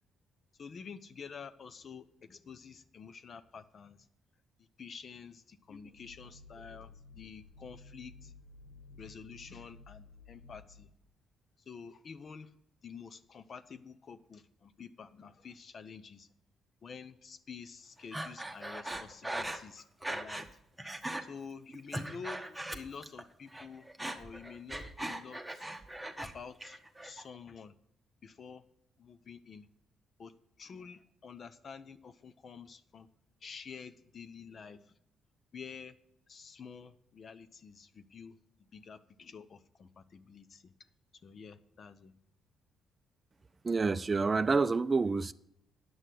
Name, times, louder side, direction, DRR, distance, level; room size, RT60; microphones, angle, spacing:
voice 1, 0.6-4.1 4.6-8.3 9.0-10.9 11.7-12.5 12.8-16.3 16.8-20.5 21.2-23.9 24.1-25.7 26.2-27.7 28.2-28.6 29.0-29.7 30.2-33.1 33.4-34.9 35.5-36.0 36.3-38.3 38.7-40.7 41.2-42.1, left 6 dB, 50° left, 0.7 m, -49 dB
sound 1, 5.7-11.1, left 3 dB, 90° left, 0.8 m, -55 dB
Breathing, 18.1-20.5 20.8-21.2 21.7-23.2 23.5-26.3 26.6-27.2, right 1 dB, 5° right, 1.1 m, -39 dB
voice 2, 43.6-45.3, right 4 dB, 30° right, 0.4 m, -28 dB
9.4 x 6.5 x 7.6 m
cardioid pair, 90°, 0 cm